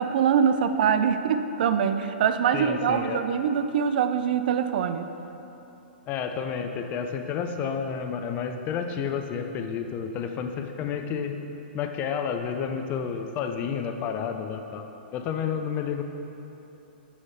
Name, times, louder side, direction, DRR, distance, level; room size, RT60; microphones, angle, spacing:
voice 1, 0.0-5.1, right 7 dB, 60° right, 9 dB, 0.4 m, -24 dB
voice 2, 2.5-3.2 6.1-11.4 11.7-14.9 15.1-16.0, left 7 dB, 30° left, 6 dB, 0.5 m, -30 dB
7.2 x 4.7 x 4.2 m, 3.0 s
hypercardioid pair, 125°, 6 cm